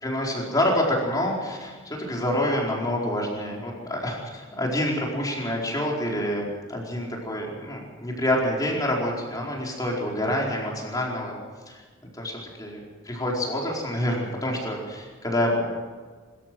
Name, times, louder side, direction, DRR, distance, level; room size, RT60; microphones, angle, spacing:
voice 1, 0.0-4.1 4.6-11.4 11.7-11.8 12.2-15.7, left 1 dB, 20° left, -2 dB, 4.5 m, -27 dB
25.0 x 14.0 x 7.7 m, 1.5 s
head